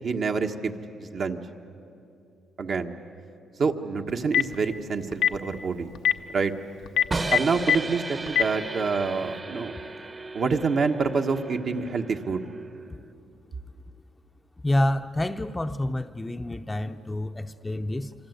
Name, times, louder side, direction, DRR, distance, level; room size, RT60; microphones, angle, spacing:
voice 1, 0.0-0.7 1.0-1.4 2.6-2.9 3.6-5.9 6.3-6.5 7.3-9.8 10.3-12.5, right 4 dB, 55° right, 4 dB, 1.5 m, -27 dB
Telephone, 4.1-4.6 5.1-5.4 5.9-6.1 6.9-7.8 8.3-8.4, left 9 dB, 90° left, 0.9 m, -20 dB
sound 1, 7.1-13.1, right 3 dB, 30° right, 1.2 m, -36 dB
voice 2, 14.6-18.1, left 1 dB, 15° left, 8 dB, 0.7 m, -28 dB
26.5 x 25.0 x 8.2 m, 2.6 s
cardioid pair, 105°, 0 cm